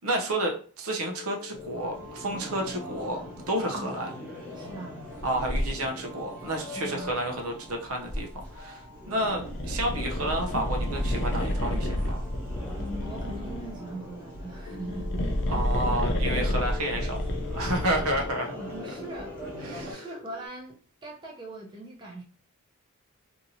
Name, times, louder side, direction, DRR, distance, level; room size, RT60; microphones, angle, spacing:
voice 1, 0.0-4.1 5.2-12.3 15.5-17.2 17.5-18.5 19.6-20.0, right 1 dB, 70° right, 0.7 m, -30 dB
sound 1, 1.0-20.5, left 6 dB, 80° left, 0.8 m, -47 dB
sound 2, 1.5-19.9, equal, 10° left, 1.1 m, -40 dB
voice 2, 4.5-5.0 6.8-7.1 9.4-9.5 12.8-15.2 15.5-15.6 18.5-19.3 19.9-22.2, right 1 dB, 20° right, 0.7 m, -41 dB
sound 3, 9.3-13.8 14.7-18.4, equal, 55° left, 0.5 m, -30 dB
2.9 x 2.6 x 2.7 m
head